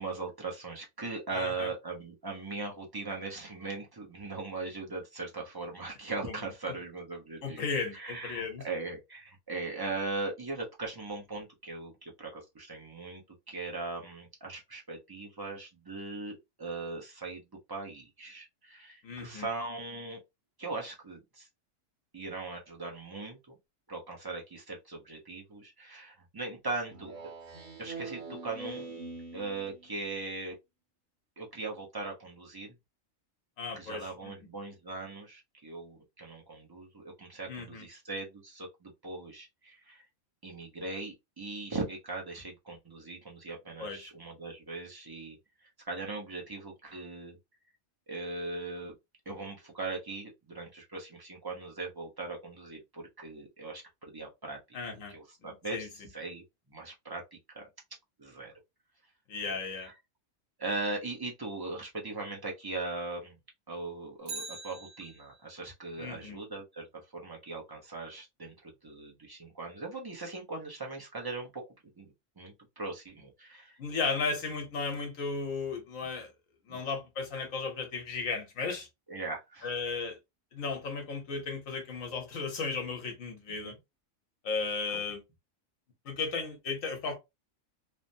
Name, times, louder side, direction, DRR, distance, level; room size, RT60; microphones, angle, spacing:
voice 1, 0.0-7.6 7.9-13.2 13.5-17.4 17.7-20.2 20.6-21.5 22.1-23.4 23.9-27.1 27.8-28.9 29.3-30.6 31.4-32.7 33.7-40.1 40.4-45.4 45.9-47.4 48.1-48.9 49.3-54.8 55.1-56.4 56.7-57.7 58.2-58.5 59.4-59.9 60.6-63.4 63.7-66.9 67.1-68.5 68.8-73.8 76.7-76.8 79.1-79.7 83.6-83.8 84.9-85.0, right 3 dB, 25° right, 0.6 m, -39 dB
voice 2, 1.3-1.7 6.2-6.3 7.4-8.6 19.0-19.5 33.6-34.3 37.5-37.8 43.8-44.1 54.7-55.1 55.4-56.1 59.3-59.9 66.0-66.4 73.8-76.3 76.7-78.9 79.6-80.2 80.5-83.7 84.4-85.2 86.0-87.2, left 4 dB, 75° left, 1.3 m, -35 dB
Speech synthesizer, 26.9-29.9, right 3 dB, 40° right, 1.1 m, -43 dB
Bicycle, 64.2-65.6 73.9-74.0, right 4 dB, 75° right, 1.3 m, -43 dB
3.2 x 2.1 x 2.6 m
omnidirectional pair, 1.4 m